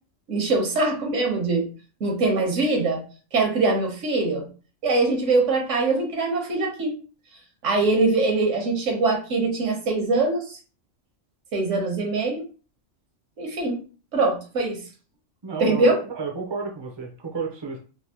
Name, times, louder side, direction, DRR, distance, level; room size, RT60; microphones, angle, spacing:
voice 1, 0.3-1.7 2.0-3.0 3.3-4.5 4.8-6.9 7.6-10.6 11.5-12.4 13.4-13.8 14.1-14.8 15.6-16.0, right 3 dB, 75° right, 1 dB, 1.3 m, -22 dB
voice 2, 15.4-17.8, right 5 dB, 30° right, 0 dB, 0.5 m, -32 dB
3.4 x 2.6 x 2.8 m, 0.38 s
omnidirectional pair, 1.3 m